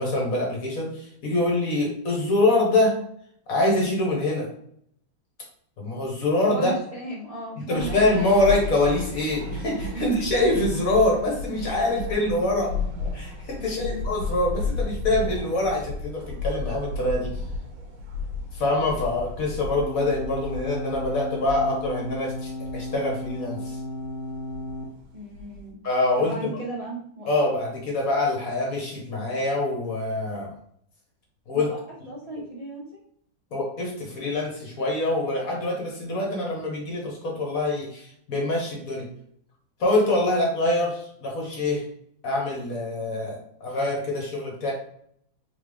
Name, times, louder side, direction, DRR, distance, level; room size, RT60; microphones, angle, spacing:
voice 1, 0.0-3.0 3.5-4.5 5.8-6.7 7.7-12.7 13.1-17.3 18.5-23.8 25.8-26.5 27.3-30.5 31.5-31.7 33.5-39.1 39.8-41.8 42.2-44.7, left 2 dB, 50° left, -1 dB, 1.3 m, -25 dB
voice 2, 6.5-8.1 9.9-10.3 13.6-14.1 25.1-25.8 26.2-27.4 31.5-31.8 32.1-32.9, right 1 dB, 70° right, -6 dB, 0.3 m, -35 dB
sound 1, 7.8-25.7, left 3 dB, 85° right, 1.9 m, -34 dB
sound 2, 19.8-24.8, left 2 dB, 25° left, 1.7 m, -34 dB
3.7 x 3.5 x 3.4 m, 0.68 s
omnidirectional pair, 2.2 m